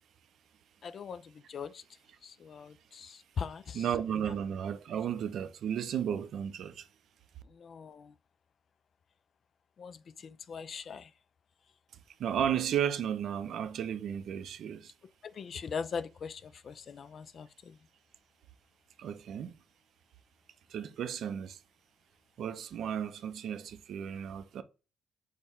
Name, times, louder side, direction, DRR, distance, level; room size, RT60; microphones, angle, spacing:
voice 1, 0.8-1.8 2.2-3.9 4.3-4.4 7.4-8.2 9.8-11.1 15.2-17.8, left 6 dB, 50° left, 0.3 m, -41 dB
voice 2, 3.7-6.9 12.2-14.9 19.0-19.5 20.7-21.6 22.4-24.6, right 9 dB, 70° right, 0.5 m, -34 dB
6.3 x 2.2 x 3.5 m
cardioid pair, 115°, 0 cm